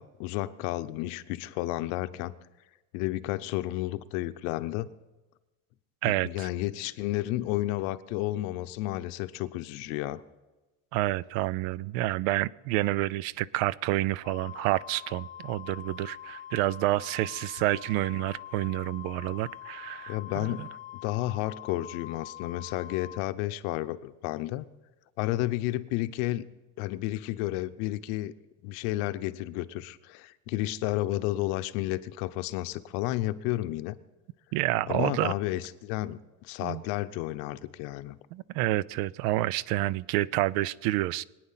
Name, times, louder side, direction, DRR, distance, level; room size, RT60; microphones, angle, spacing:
voice 1, 0.0-2.3 2.9-4.9 6.1-10.2 20.1-20.7 21.0-24.6 25.2-26.4 26.8-28.3 28.6-34.0 34.9-38.2, left 16 dB, 70° left, 0.8 m, -32 dB
voice 2, 6.0-6.5 10.9-20.7 34.5-35.3 36.6-36.8 38.3-41.2, right 17 dB, 80° right, 0.6 m, -29 dB
Wind instrument woodwind instrument, 14.2-23.2, left 11 dB, 20° left, 0.6 m, -44 dB
23.5 x 9.4 x 5.7 m
cardioid pair, 180°, 42 cm